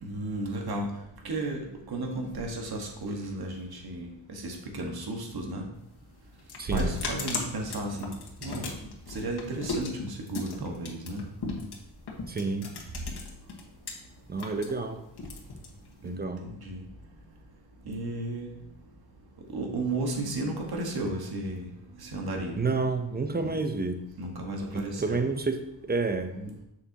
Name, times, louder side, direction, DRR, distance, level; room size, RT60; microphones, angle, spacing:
voice 1, 0.0-0.9 1.2-1.6 1.9-5.7 6.7-8.1 8.4-8.7 9.1-11.3 16.0-16.8 17.8-18.5 19.5-21.7 22.0-22.5 23.4-23.6 24.2-25.2, right 2 dB, 60° right, 1 dB, 1.7 m, -33 dB
sound 1, 5.7-13.9 14.2-16.2, left 3 dB, 65° left, 1.6 m, -37 dB
voice 2, 6.6-7.0 12.3-12.7 14.3-15.0 16.0-16.5 22.6-24.0 24.7-26.6, right 3 dB, 20° right, 7 dB, 0.9 m, -30 dB
7.1 x 6.6 x 3.0 m, 0.82 s
cardioid pair, 65°, 43 cm